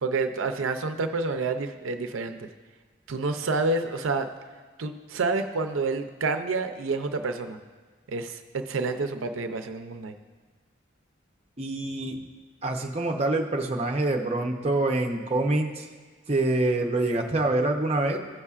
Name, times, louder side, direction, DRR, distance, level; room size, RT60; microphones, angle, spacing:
voice 1, 0.0-2.5 3.1-4.3 4.8-7.6 8.1-10.1, right 3 dB, 85° right, 7 dB, 0.5 m, -28 dB
voice 2, 11.6-12.3 12.6-15.9 16.3-18.2, right 2 dB, 30° right, 2 dB, 0.6 m, -26 dB
15.5 x 5.5 x 2.4 m, 1.5 s
head